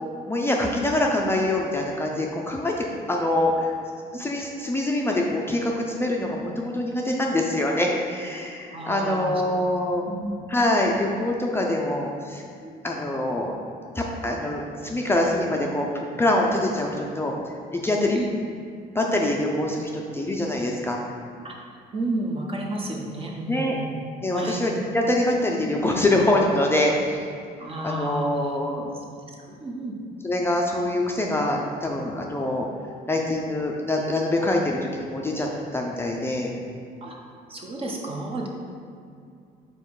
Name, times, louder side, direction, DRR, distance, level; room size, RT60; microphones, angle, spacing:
voice 1, 0.3-3.7 4.2-10.0 10.5-12.4 12.8-13.5 13.9-17.3 17.7-18.2 18.9-21.0 23.5-23.7 24.2-27.2 27.8-28.9 30.2-32.7 33.1-36.5, left 1 dB, 15° left, -1 dB, 0.6 m, -24 dB
voice 2, 8.7-9.6 10.1-10.3 12.6-12.8 18.1-18.3 21.4-21.6 21.9-24.0 24.3-24.6 27.6-28.6 29.4-30.0 37.0-37.2 37.5-38.5, right 2 dB, 35° right, 0 dB, 1.0 m, -32 dB
5.5 x 4.1 x 4.7 m, 2.3 s
cardioid pair, 110°, 17 cm